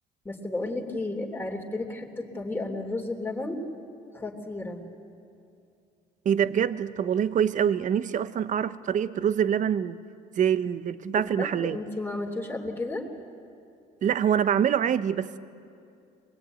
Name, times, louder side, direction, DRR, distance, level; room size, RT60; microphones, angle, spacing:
voice 1, 0.2-3.6 4.1-4.8 11.1-13.1, left 2 dB, 10° left, 3.1 m, -33 dB
voice 2, 6.2-10.0 10.4-11.8 14.0-15.4, right 8 dB, 45° right, 0.9 m, -25 dB
24.0 x 21.5 x 9.2 m
cardioid pair, 110°, 17 cm